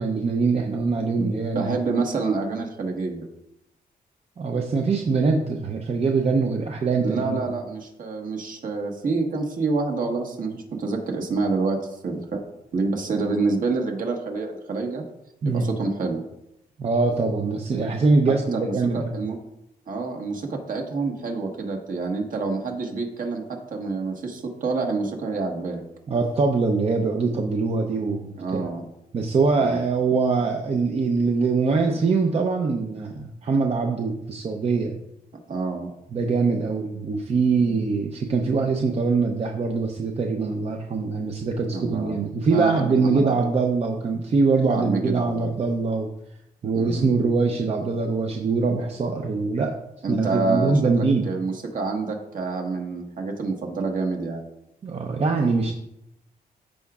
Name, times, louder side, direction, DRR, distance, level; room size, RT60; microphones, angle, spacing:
voice 1, 0.0-1.8 4.4-7.4 15.4-15.7 16.8-19.2 26.1-28.7 29.1-34.9 36.1-46.1 46.6-49.7 50.1-51.2 54.8-55.7, right 4 dB, 40° right, 2 dB, 0.6 m, -23 dB
voice 2, 1.2-3.3 7.0-12.4 12.7-15.0 15.4-16.2 18.5-19.4 19.9-25.8 28.4-28.9 29.6-29.8 35.5-35.9 41.7-42.2 42.5-43.6 44.7-45.5 46.7-47.0 50.0-54.4, right 3 dB, 60° right, 2 dB, 1.4 m, -27 dB
13.5 x 4.9 x 2.4 m, 0.84 s
cardioid pair, 125°, 16 cm